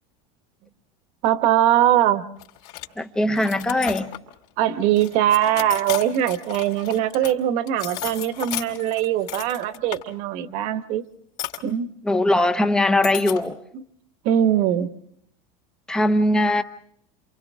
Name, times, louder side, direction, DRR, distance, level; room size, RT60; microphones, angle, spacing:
voice 1, 1.2-2.2 4.6-11.0 11.6-11.9 13.7-13.8 14.2-14.9, right 11 dB, 45° right, 1.2 m, -21 dB
sound 1, 2.4-2.9 3.3-4.4 5.0-7.3 7.7-10.0 11.4-11.6 13.0-13.5, left 14 dB, 50° left, 3.4 m, -34 dB
voice 2, 3.0-4.1 12.0-13.6 15.9-16.6, left 1 dB, 5° left, 0.8 m, -20 dB
30.0 x 27.5 x 3.6 m
cardioid pair, 180°, 17 cm